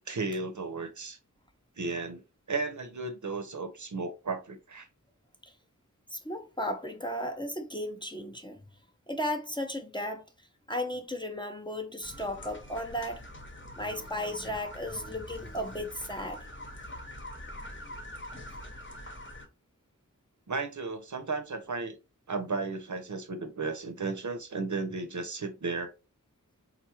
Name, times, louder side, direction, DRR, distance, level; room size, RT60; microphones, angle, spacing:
voice 1, 0.1-1.2 1.8-2.2 2.5-4.9 20.5-22.0 22.3-25.9, right 3 dB, 65° right, 0.6 m, -34 dB
voice 2, 6.1-8.6 9.1-10.2 10.7-13.2 13.8-16.4 17.8-17.9, left 1 dB, 15° left, 0.5 m, -35 dB
sound 1, 12.0-19.5, left 1 dB, 35° left, 0.8 m, -44 dB
3.7 x 2.3 x 2.9 m
wide cardioid pair, 50°, 33 cm